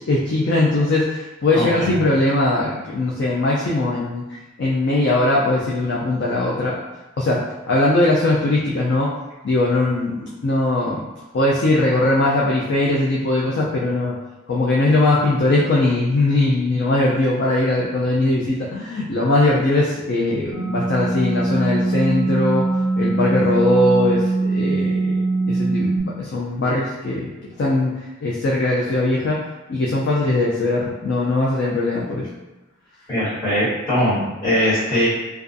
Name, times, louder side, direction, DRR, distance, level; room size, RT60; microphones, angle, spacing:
voice 1, 0.1-4.3 4.6-6.8 7.2-9.1 9.4-11.0 11.3-14.2 14.5-22.7 23.0-27.3 27.6-32.3, left 2 dB, 60° left, -4 dB, 0.4 m, -20 dB
voice 2, 1.5-1.9 33.1-35.1, equal, 20° left, -15 dB, 1.4 m, -21 dB
sound 1, 20.5-26.0, right 2 dB, 5° left, 0.5 m, -21 dB
2.4 x 2.3 x 2.5 m, 1.1 s
head